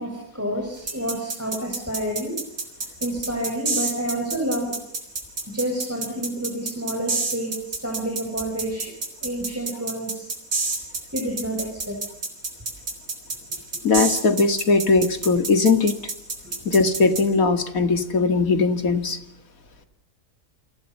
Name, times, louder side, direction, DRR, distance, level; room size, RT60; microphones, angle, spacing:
voice 1, 0.0-2.4 3.0-4.8 5.5-7.5 7.8-8.9 9.2-10.2 11.1-12.0 16.4-16.5, right 1 dB, 10° right, 0 dB, 6.7 m, -29 dB
sound 1, 0.9-17.2, right 3 dB, 75° right, 5.0 m, -28 dB
voice 2, 13.8-16.0 16.7-19.2, left 4 dB, 65° left, 8 dB, 2.6 m, -19 dB
29.5 x 26.0 x 5.6 m, 0.74 s
omnidirectional pair, 1.6 m